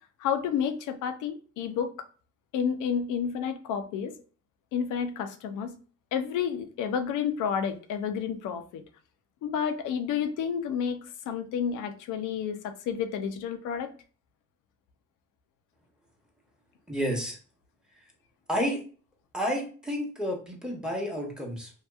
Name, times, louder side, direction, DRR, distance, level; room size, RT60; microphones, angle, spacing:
voice 1, 0.2-1.9 2.5-4.1 4.7-5.7 6.1-8.8 9.4-13.9, left 7 dB, 90° left, 8 dB, 0.5 m, -30 dB
voice 2, 16.9-17.4 18.5-18.8 19.3-21.7, equal, 5° right, 0 dB, 0.9 m, -30 dB
2.8 x 2.3 x 2.3 m, 0.38 s
cardioid pair, 90°, 30 cm